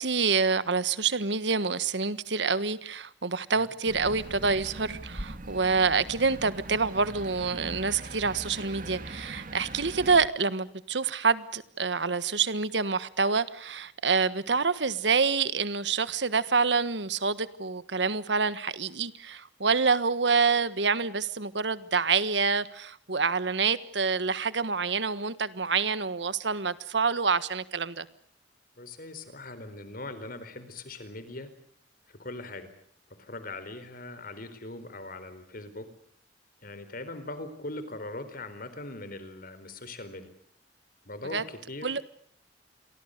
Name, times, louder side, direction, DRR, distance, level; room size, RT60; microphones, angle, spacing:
voice 1, 0.0-28.0 41.3-41.4 41.8-42.1, right 5 dB, 75° right, 1.5 m, -27 dB
sound 1, 3.8-10.3, right 2 dB, 50° right, 2.2 m, -41 dB
voice 2, 28.8-31.5 32.1-32.7 33.1-35.9 36.6-40.3 41.1-41.9, left 2 dB, 55° left, 4.3 m, -40 dB
29.0 x 24.0 x 6.7 m
head